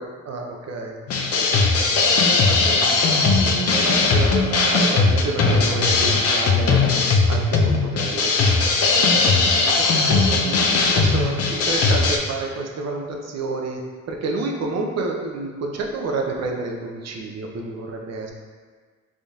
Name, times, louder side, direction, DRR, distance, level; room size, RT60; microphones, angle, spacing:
voice 1, 0.0-1.6 2.3-8.6 8.9-13.8 14.1-18.3, right 3 dB, 60° right, 1 dB, 0.6 m, -30 dB
sound 1, 1.1-12.2, left 4 dB, 55° left, 0.5 m, -19 dB
3.9 x 3.6 x 2.3 m, 1.5 s
cardioid pair, 90°, 30 cm